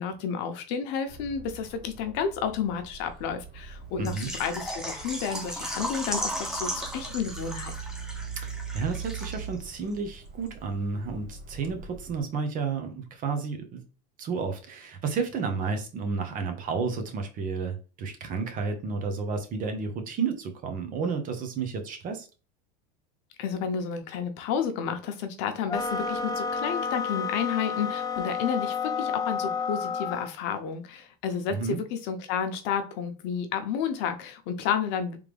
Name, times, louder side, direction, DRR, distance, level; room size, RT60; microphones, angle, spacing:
voice 1, 0.0-7.7 23.4-35.2, left 7 dB, 65° left, 0.9 m, -31 dB
sound 1, 1.1-12.2, right 6 dB, 60° right, 2.0 m, -42 dB
voice 2, 4.0-4.3 8.5-13.8 14.2-22.3 31.5-31.8, right 5 dB, 45° right, 1.1 m, -31 dB
Water / Liquid, 4.1-9.7 9.9-10.0 10.5-10.6, equal, 5° right, 0.9 m, -35 dB
sound 2, 25.7-30.3, left 5 dB, 20° left, 0.3 m, -30 dB
3.5 x 3.4 x 3.4 m
supercardioid pair, 110°, 20 cm